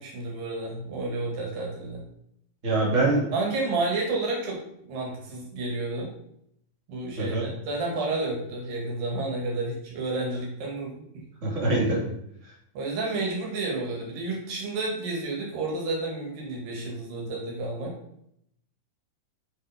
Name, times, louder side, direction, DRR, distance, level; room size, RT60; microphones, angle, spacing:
voice 1, 0.0-2.0 3.3-6.1 6.9-11.2 12.8-17.9, right 2 dB, 80° right, -1 dB, 3.9 m, -31 dB
voice 2, 2.6-3.2 7.2-7.4 11.4-12.0, right 2 dB, 20° right, -4 dB, 2.8 m, -23 dB
8.2 x 5.9 x 5.2 m, 0.72 s
omnidirectional pair, 4.0 m